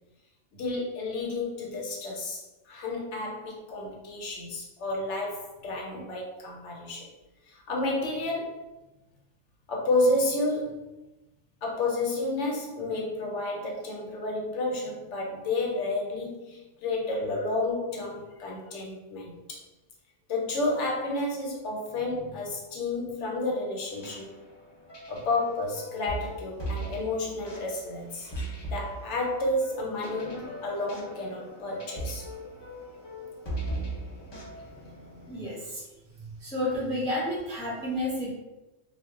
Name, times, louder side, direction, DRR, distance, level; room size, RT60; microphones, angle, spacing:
voice 1, 0.5-7.1 7.5-8.6 9.7-10.9 11.6-19.6 20.3-24.3 25.1-28.3 28.7-32.3 34.4-34.5 34.8-35.3, left 2 dB, 70° left, -1 dB, 0.9 m, -31 dB
sound 1, 23.8-35.4, right 1 dB, 45° left, 0.3 m, -39 dB
voice 2, 35.2-35.8 36.4-38.3, left 1 dB, 5° left, -7 dB, 0.6 m, -30 dB
2.2 x 2.1 x 3.5 m, 1.0 s
omnidirectional pair, 1.3 m